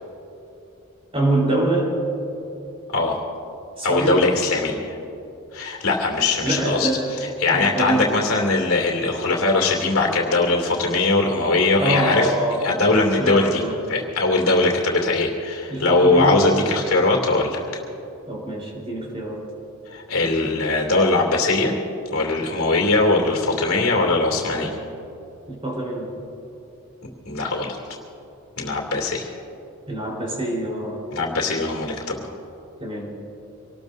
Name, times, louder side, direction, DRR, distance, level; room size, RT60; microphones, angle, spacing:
voice 1, 1.1-1.9 3.8-4.3 6.4-7.1 7.5-8.1 11.8-12.8 13.2-13.8 15.7-16.5 18.3-19.4 25.5-26.1 29.9-31.0 32.8-33.1, right 1 dB, 25° right, -3 dB, 4.0 m, -24 dB
voice 2, 2.9-3.3 3.8-5.0 5.5-6.9 7.4-12.3 12.6-13.6 13.9-17.6 19.9-21.7 22.1-24.7 27.2-27.8 28.6-29.3 31.1-32.3, left 3 dB, 70° left, 1 dB, 2.7 m, -20 dB
26.0 x 19.5 x 2.7 m, 2.8 s
head